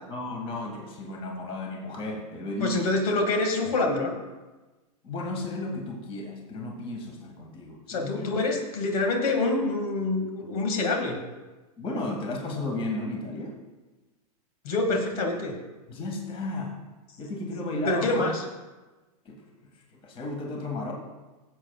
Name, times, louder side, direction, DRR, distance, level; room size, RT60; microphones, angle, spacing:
voice 1, 0.1-2.9 5.0-8.4 11.8-13.6 15.9-16.8 17.2-18.3 19.3-19.4 19.9-20.9, left 2 dB, 25° left, 1 dB, 1.7 m, -34 dB
voice 2, 2.6-4.2 7.9-11.2 14.6-15.5 17.9-18.4, left 2 dB, 70° left, 2 dB, 2.0 m, -26 dB
18.5 x 7.8 x 2.4 m, 1.2 s
hypercardioid pair, 135°, 20 cm